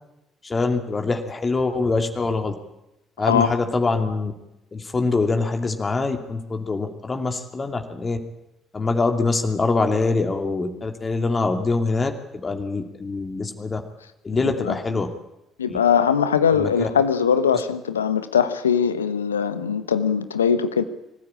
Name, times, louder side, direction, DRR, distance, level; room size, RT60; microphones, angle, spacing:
voice 1, 0.4-2.5 3.2-4.3 4.7-8.2 8.7-13.8 14.2-15.1 15.7-15.8 16.5-16.9, left 3 dB, 30° left, 4 dB, 2.7 m, -24 dB
voice 2, 3.2-3.5 14.4-14.7 15.6-20.8, left 7 dB, 85° left, 12 dB, 1.1 m, -21 dB
25.0 x 15.0 x 8.8 m, 0.93 s
figure-of-eight pair, 50°, 0 cm